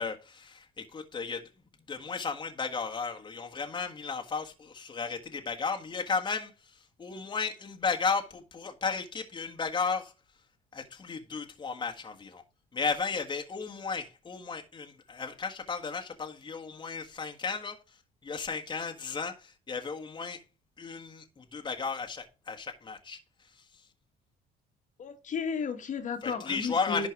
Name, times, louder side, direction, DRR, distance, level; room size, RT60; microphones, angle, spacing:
voice 1, 0.0-1.5 1.9-10.1 10.7-12.4 12.7-18.0 18.2-20.4 20.8-23.2 23.5-23.6 26.2-27.1, left 5 dB, 25° left, 1.5 m, -34 dB
voice 2, 25.0-27.1, left 5 dB, 50° left, 1.6 m, -33 dB
11.0 x 4.5 x 4.7 m
cardioid pair, 110°, 17 cm